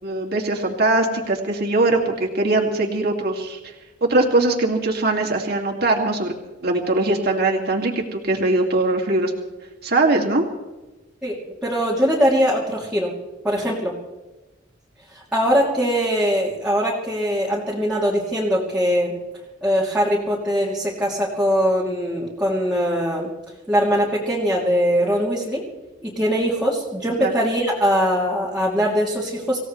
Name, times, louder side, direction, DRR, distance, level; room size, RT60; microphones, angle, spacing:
voice 1, 0.0-3.6 4.0-6.3 6.6-9.3 9.8-10.4 27.2-27.3, right 2 dB, 55° right, 1 dB, 2.5 m, -21 dB
voice 2, 11.2-13.1 13.4-13.9 15.1-19.1 19.6-23.3 23.7-25.6 26.0-29.6, equal, 5° right, -7 dB, 2.9 m, -21 dB
26.5 x 16.5 x 3.3 m, 1.1 s
head